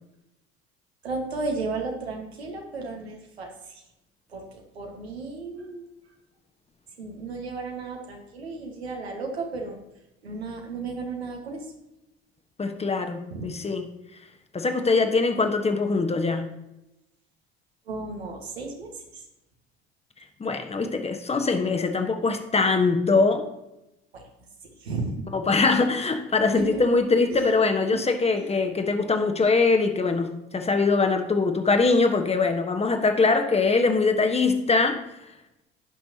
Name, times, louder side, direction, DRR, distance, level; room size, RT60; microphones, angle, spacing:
voice 1, 1.0-3.7 4.3-5.9 7.0-9.7 10.2-11.6 13.3-13.5 17.9-19.2 24.1-24.2 24.6-25.2 25.7-25.8 26.5-26.8 27.3-27.5 28.3-28.5, right 3 dB, 80° right, 1 dB, 1.7 m, -34 dB
voice 2, 12.6-13.8 14.5-16.5 20.4-23.5 25.3-30.3 30.5-35.0, left 4 dB, 20° left, 6 dB, 1.2 m, -22 dB
15.0 x 6.0 x 2.9 m, 0.90 s
figure-of-eight pair, 65°, 31 cm